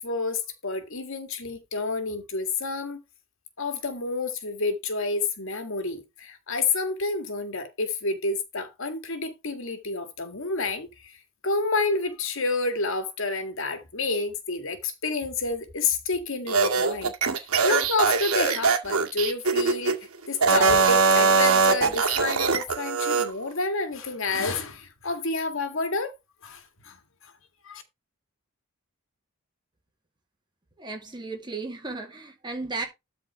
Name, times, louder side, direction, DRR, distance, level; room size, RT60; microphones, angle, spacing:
voice 1, 0.0-3.0 3.6-11.1 11.4-20.0 20.3-26.1 26.4-27.0 27.6-27.8, left 3 dB, 65° left, 1.9 m, -29 dB
sound 1, 16.5-20.0 20.4-23.3, right 5 dB, 90° right, 2.0 m, -22 dB
voice 2, 30.8-32.9, right 3 dB, 20° right, 2.1 m, -34 dB
12.5 x 4.4 x 4.6 m
head